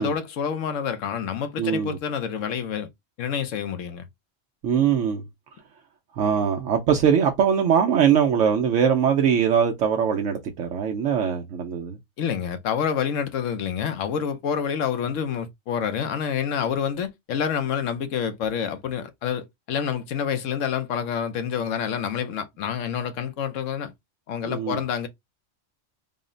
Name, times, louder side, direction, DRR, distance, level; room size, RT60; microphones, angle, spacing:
voice 1, 0.0-2.9 3.2-4.0 12.2-23.9 24.3-25.1, left 7 dB, 85° left, 1.1 m, -28 dB
voice 2, 1.6-2.0 4.6-5.2 6.1-12.0 24.4-24.8, right 7 dB, 75° right, 1.0 m, -21 dB
3.8 x 2.1 x 3.8 m
omnidirectional pair, 1.3 m